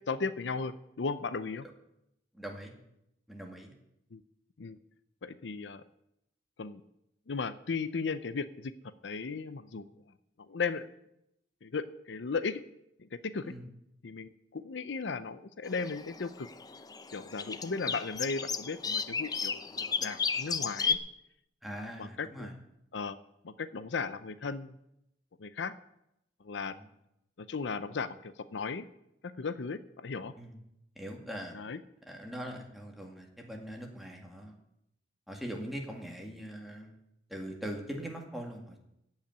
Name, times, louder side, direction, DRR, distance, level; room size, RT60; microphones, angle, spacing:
voice 1, 0.1-1.6 4.1-4.2 4.6-4.8 5.2-5.8 6.6-6.8 7.3-8.7 9.0-9.8 10.5-10.9 11.6-12.6 13.0-13.5 14.0-16.5 17.1-21.0 21.7-22.5 22.9-23.2 23.4-24.8 25.4-25.7 26.4-26.8 27.4-28.9 29.2-30.3 31.5-31.8, left 4 dB, 80° left, 14 dB, 0.6 m, -36 dB
voice 2, 2.3-2.7 3.3-3.7 13.4-13.7 21.6-22.6 26.7-26.9 30.4-30.6 31.0-31.6 32.1-34.6 35.3-37.0 37.3-38.8, equal, ahead, 1 dB, 2.0 m, -41 dB
sound 1, 15.7-21.0, left 6 dB, 20° left, 0.5 m, -34 dB
15.0 x 5.8 x 9.0 m, 0.82 s
head